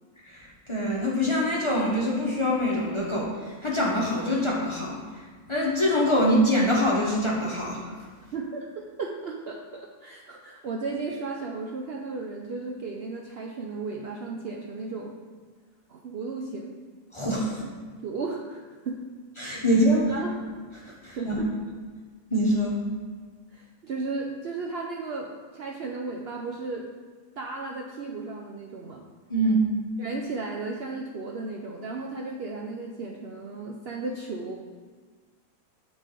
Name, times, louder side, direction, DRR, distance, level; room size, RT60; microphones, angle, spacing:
voice 1, 0.3-7.9 17.1-17.6 19.4-20.1 20.8-21.3 22.3-22.8 29.3-29.7, equal, 25° left, -4 dB, 0.8 m, -24 dB
voice 2, 8.3-15.1 15.9-16.8 18.0-18.6 18.9-19.0 19.7-20.4 21.1-21.5 23.5-26.9 27.4-29.0 30.0-34.6, right 3 dB, 60° right, -1 dB, 0.7 m, -35 dB
8.1 x 4.0 x 3.7 m, 1.5 s
omnidirectional pair, 1.4 m